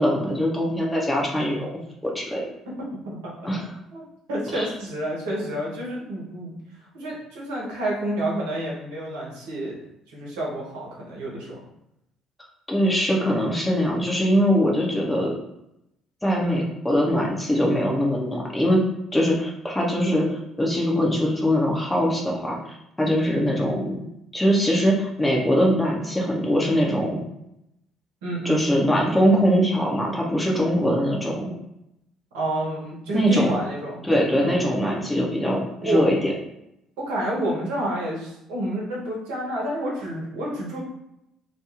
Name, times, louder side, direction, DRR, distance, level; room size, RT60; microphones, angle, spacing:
voice 1, 0.0-1.7 2.0-2.4 3.4-3.6 4.5-4.7 12.7-15.3 16.2-18.8 19.1-24.1 24.3-27.2 28.4-31.5 33.1-33.6 34.0-36.3, equal, 10° left, -2 dB, 0.7 m, -22 dB
voice 2, 4.3-6.5 6.9-9.8 10.1-11.6 16.4-16.7 28.2-28.6 32.3-34.0 34.4-34.6 35.8-36.1 37.0-40.8, right 1 dB, 70° right, -4 dB, 0.9 m, -29 dB
2.4 x 2.2 x 3.0 m, 0.82 s
figure-of-eight pair, 50°, 0 cm